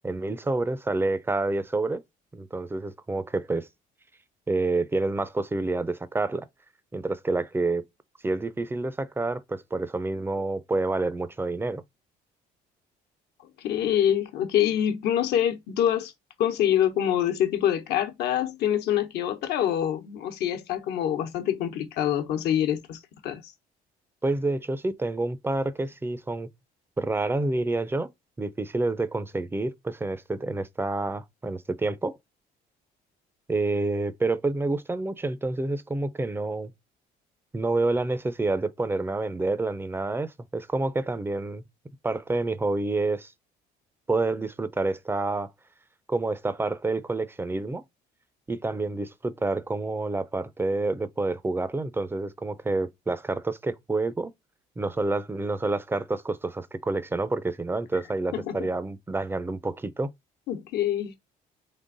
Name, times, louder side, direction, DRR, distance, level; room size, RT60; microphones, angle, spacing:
voice 1, 0.0-2.0 2.3-3.7 4.5-6.5 6.9-7.8 8.2-11.8 24.2-26.5 27.0-28.1 28.4-32.2 33.5-36.7 37.5-41.7 42.0-43.3 44.1-45.5 46.1-47.8 48.5-54.3 54.8-60.1, right 2 dB, 15° right, 0.5 m, -28 dB
voice 2, 13.6-16.1 16.4-23.5 58.3-58.5 60.5-61.1, left 10 dB, 75° left, 1.0 m, -25 dB
3.8 x 3.4 x 3.8 m
cardioid pair, 110°, 17 cm